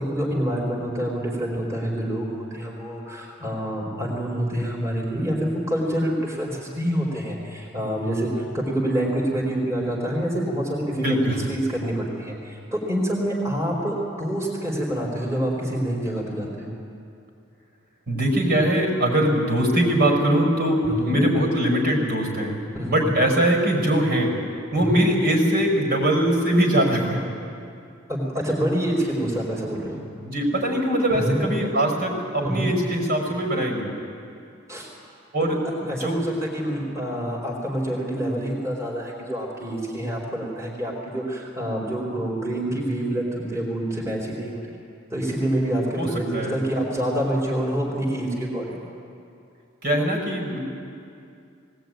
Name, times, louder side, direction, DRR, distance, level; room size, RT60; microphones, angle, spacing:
voice 1, 0.0-16.7 20.8-21.2 22.7-23.1 24.8-25.0 28.1-30.0 31.1-31.4 32.4-32.7 34.7-34.9 35.5-35.6 35.9-44.7 45.1-48.8, right 1 dB, 15° right, -4 dB, 3.8 m, -27 dB
voice 2, 11.0-11.4 18.1-22.6 22.8-24.3 24.7-27.2 30.2-33.9 35.3-36.2 46.0-46.1 46.3-46.6 49.8-50.6, right 1 dB, 55° right, 1 dB, 5.5 m, -22 dB
19.5 x 18.5 x 9.3 m, 2.5 s
head